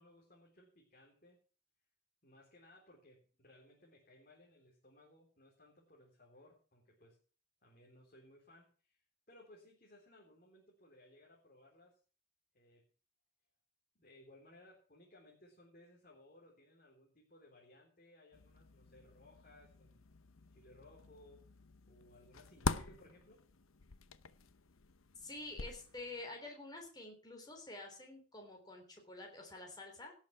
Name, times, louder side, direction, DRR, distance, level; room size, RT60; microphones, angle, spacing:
voice 1, 0.0-1.4 2.2-7.2 7.6-9.0 9.3-12.0 12.5-12.8 14.0-20.0 20.5-21.5 21.9-23.5, left 1 dB, 40° left, -2 dB, 3.7 m, -62 dB
sound 1, 18.3-26.2, left 4 dB, 80° left, 0.8 m, -45 dB
voice 2, 25.2-30.1, left 2 dB, 20° left, 2 dB, 3.6 m, -49 dB
17.5 x 7.3 x 5.9 m, 0.39 s
head